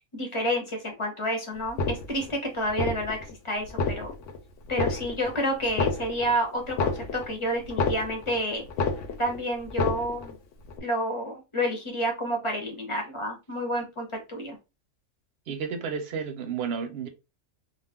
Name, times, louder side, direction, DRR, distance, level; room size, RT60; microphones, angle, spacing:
voice 1, 0.1-3.2 3.4-4.1 4.7-8.6 9.2-10.3 10.8-14.6, equal, 30° left, 0.7 m, -29 dB
sound 1, 1.6-2.4 2.7-3.3 3.6-4.4 4.7-5.4 5.6-8.4 8.7-9.4 9.6-10.4 10.7-10.8, left 4 dB, 75° left, 0.9 m, -29 dB
voice 2, 15.5-17.1, right 6 dB, 60° right, 0.8 m, -32 dB
2.4 x 2.2 x 3.4 m
omnidirectional pair, 1.4 m